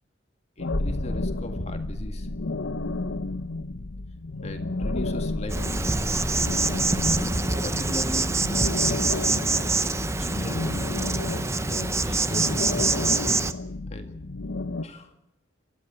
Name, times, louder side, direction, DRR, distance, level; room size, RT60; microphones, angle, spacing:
sound 1, 0.6-14.8, left 3 dB, 80° left, 0.9 m, -32 dB
voice 1, 0.6-2.3 4.4-6.2 7.4-9.1 10.2-10.7 11.5-12.7 13.9-14.1 14.8-15.1, left 1 dB, 35° left, 5 dB, 2.1 m, -38 dB
sound 2, 0.7-9.1 9.4-9.5, left 1 dB, 55° left, 1.5 m, -35 dB
Insect, 5.5-13.5, right 3 dB, 15° right, 0.7 m, -25 dB
28.0 x 13.5 x 8.7 m, 0.88 s
head